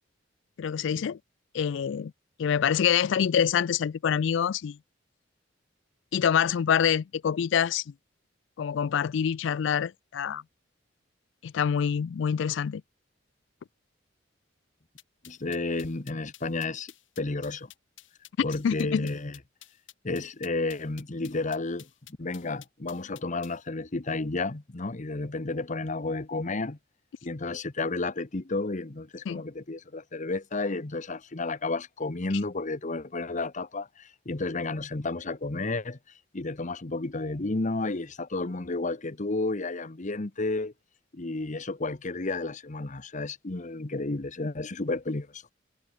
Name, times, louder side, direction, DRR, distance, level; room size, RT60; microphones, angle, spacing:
voice 1, 0.6-1.2 1.5-2.1 2.4-4.8 6.1-7.8 8.6-10.4 11.4-12.8 18.6-19.1 29.3-29.4, left 8 dB, 70° left, 0.4 m, -26 dB
sound 1, 15.0-23.6, left 14 dB, 85° left, 3.8 m, -51 dB
voice 2, 15.2-16.9 17.2-17.7 18.4-19.4 20.0-21.9 22.2-26.8 27.2-36.0 36.3-40.7 41.1-45.5, left 3 dB, 40° left, 1.1 m, -32 dB
head